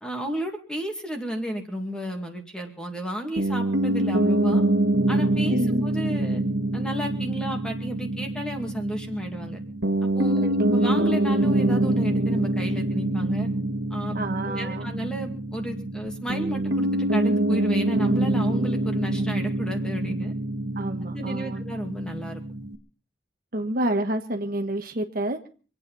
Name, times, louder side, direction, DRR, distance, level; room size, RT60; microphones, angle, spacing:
voice 1, 0.0-4.6 5.1-5.6 5.8-6.4 6.7-9.6 10.1-13.5 13.9-14.1 14.5-20.3 21.0-22.4, right 1 dB, 5° left, 4 dB, 2.3 m, -33 dB
Piano, 3.4-22.8, right 1 dB, 65° right, 1.8 m, -25 dB
voice 2, 5.5-5.8 10.4-10.7 14.1-15.0 20.8-21.6 23.5-25.5, right 1 dB, 50° right, 5 dB, 1.4 m, -29 dB
26.0 x 9.0 x 5.4 m, 0.38 s
head